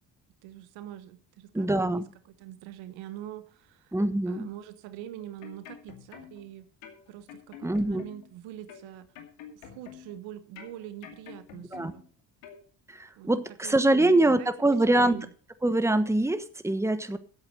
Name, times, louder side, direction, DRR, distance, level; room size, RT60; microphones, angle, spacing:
voice 1, 0.4-2.1 2.4-4.0 4.3-6.7 7.1-9.1 9.5-12.0 13.2-13.3 13.6-15.3, right 12 dB, 80° right, 12 dB, 1.2 m, -44 dB
voice 2, 1.5-2.1 3.9-4.5 7.6-8.0 11.7-11.9 12.9-15.2 15.6-17.2, right 2 dB, 5° right, 11 dB, 1.2 m, -24 dB
sound 1, 5.2-6.5 6.8-8.3 8.7-10.2 10.6-12.1 12.4-12.6, left 9 dB, 80° left, 2.5 m, -48 dB
11.0 x 8.0 x 6.5 m, 0.43 s
hypercardioid pair, 60°, 46 cm